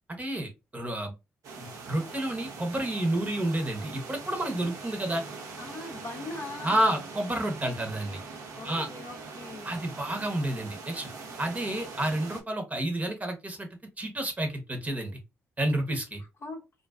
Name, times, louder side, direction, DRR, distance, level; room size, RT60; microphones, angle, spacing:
voice 1, 0.2-1.1 1.6-5.2 6.6-8.2 8.6-8.9 9.6-11.1 11.4-13.7 14.0-15.2 15.6-16.2, right 1 dB, 25° right, 0.9 m, -30 dB
sound 1, 1.4-12.4, right 4 dB, 65° right, 0.6 m, -42 dB
voice 2, 5.6-7.0 8.6-9.8 16.4-16.6, left 2 dB, 45° left, 0.7 m, -41 dB
2.4 x 2.2 x 2.3 m
hypercardioid pair, 45°, 6 cm